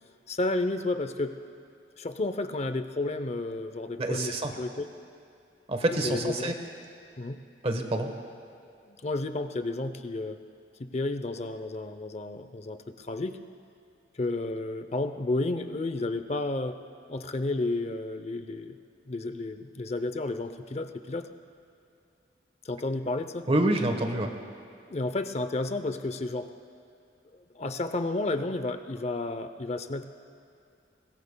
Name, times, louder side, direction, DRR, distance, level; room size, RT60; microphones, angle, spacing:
voice 1, 0.3-1.4 2.0-4.9 6.0-6.6 7.2-7.4 8.9-10.4 10.8-13.4 14.2-16.8 17.1-18.8 19.1-21.3 22.6-23.5 24.9-26.5 27.5-30.0, left 2 dB, 35° left, 9 dB, 0.6 m, -31 dB
voice 2, 4.0-4.5 5.7-6.5 7.6-8.1 23.5-24.3, right 1 dB, 35° right, 5 dB, 1.1 m, -27 dB
23.5 x 20.0 x 2.3 m, 2.5 s
head